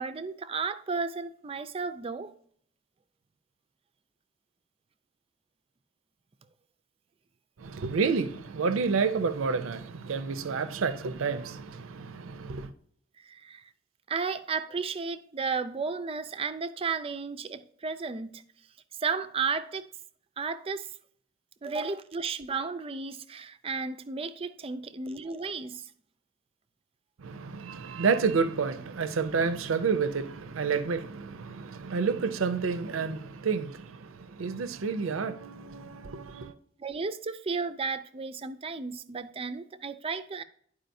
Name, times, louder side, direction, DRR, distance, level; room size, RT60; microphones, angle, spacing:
voice 1, 0.0-2.3 13.2-13.6 14.1-18.4 19.0-19.9 20.4-20.9 21.6-25.8 36.8-40.4, right 4 dB, 30° right, 0.4 m, -33 dB
voice 2, 7.6-12.7 27.2-36.5, right 5 dB, 80° right, 0.5 m, -30 dB
11.5 x 4.8 x 2.6 m
head